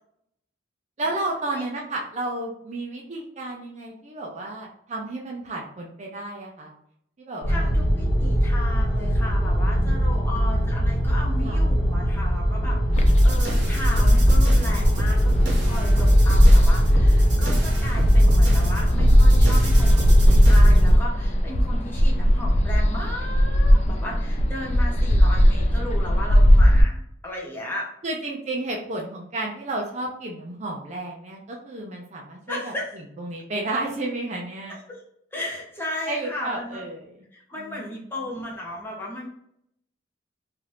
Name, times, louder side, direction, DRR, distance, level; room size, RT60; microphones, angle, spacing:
voice 1, 1.0-6.7 7.2-7.9 11.4-11.6 28.0-32.7 33.2-34.8 36.1-37.0 37.6-38.1, right 2 dB, 35° right, -1 dB, 0.5 m, -32 dB
sound 1, 7.4-21.0, equal, 70° left, 1.4 m, -23 dB
voice 2, 7.5-27.9 32.5-32.9 34.7-35.1 35.3-36.8 37.3-39.3, left 1 dB, 10° left, -4 dB, 0.8 m, -35 dB
sound 2, 12.9-26.8, equal, 35° left, 0.3 m, -19 dB
sound 3, 13.0-20.9, equal, 60° right, 1.1 m, -20 dB
2.8 x 2.4 x 3.2 m, 0.72 s
head